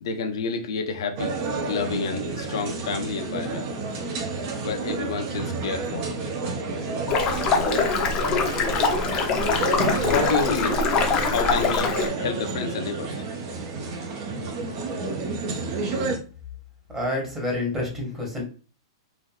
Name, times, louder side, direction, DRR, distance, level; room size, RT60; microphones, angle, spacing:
voice 1, 0.0-1.3 1.6-3.6 4.6-6.1 9.6-10.9 11.2-13.2, left 5 dB, 65° left, 4 dB, 0.6 m, -30 dB
sound 1, 1.2-16.2, right 3 dB, 45° right, 0.7 m, -30 dB
sound 2, 7.1-12.1, left 4 dB, 30° left, 0.6 m, -23 dB
voice 2, 16.9-18.4, left 1 dB, 20° right, -1 dB, 1.2 m, -28 dB
3.4 x 2.6 x 2.3 m, 0.36 s
hypercardioid pair, 130°, 3 cm